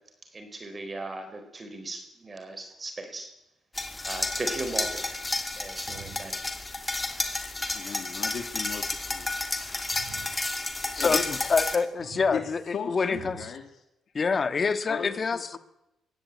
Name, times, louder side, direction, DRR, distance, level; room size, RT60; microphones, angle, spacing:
voice 1, 0.3-3.3 4.0-5.2 5.5-6.4, right 2 dB, 30° right, 7 dB, 4.2 m, -37 dB
sound 1, 3.8-11.8, left 2 dB, 20° left, 2.8 m, -31 dB
sound 2, 5.9-6.4 9.9-10.5 12.0-12.7 13.1-13.7, right 8 dB, 80° right, 4.0 m, -46 dB
voice 2, 7.7-9.4 9.8-9.9 10.8-11.5 12.3-13.7 14.9-15.6, left 7 dB, 60° left, 5 dB, 2.1 m, -37 dB
voice 3, 10.9-13.4 14.1-15.6, left 5 dB, 40° left, 12 dB, 1.5 m, -26 dB
20.5 x 16.0 x 8.6 m, 0.89 s
cardioid pair, 90°, 0 cm